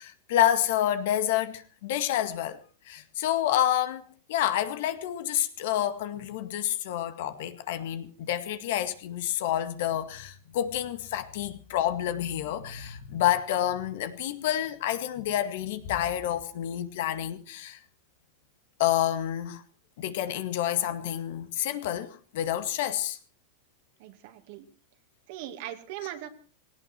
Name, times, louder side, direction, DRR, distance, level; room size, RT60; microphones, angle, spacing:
voice 1, 0.0-2.6 2.9-17.8 18.8-19.6 20.0-23.2, left 11 dB, 65° left, 1.9 m, -28 dB
voice 2, 24.0-24.7 25.3-26.3, right 13 dB, 60° right, 2.4 m, -39 dB
17.5 x 17.5 x 4.6 m
supercardioid pair, 135°, 0 cm